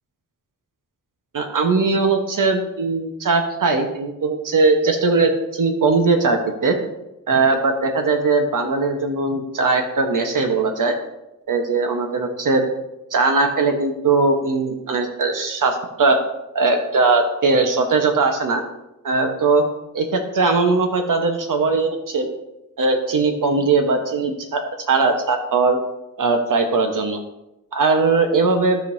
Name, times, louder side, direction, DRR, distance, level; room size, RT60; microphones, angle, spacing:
voice 1, 1.3-6.8 7.3-10.9 11.5-12.6 13.1-16.2 16.5-18.6 19.0-19.6 19.9-22.3 22.8-25.8 26.2-27.2 27.7-28.8, right 3 dB, 70° right, 5 dB, 1.2 m, -19 dB
13.5 x 5.3 x 2.7 m, 0.93 s
cardioid pair, 80°, 33 cm